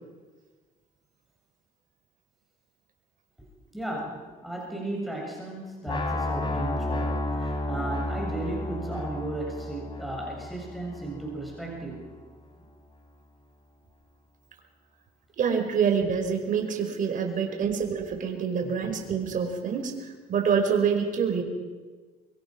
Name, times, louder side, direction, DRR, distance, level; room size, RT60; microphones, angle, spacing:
voice 1, 3.7-12.1 18.6-18.7, right 2 dB, ahead, -1 dB, 7.1 m, -35 dB
sound 1, 5.9-11.8, left 2 dB, 30° left, 3.6 m, -32 dB
voice 2, 15.4-19.9 20.3-21.4, right 6 dB, 50° right, 4 dB, 5.1 m, -26 dB
25.0 x 23.5 x 6.2 m, 1.4 s
cardioid pair, 110°, 17 cm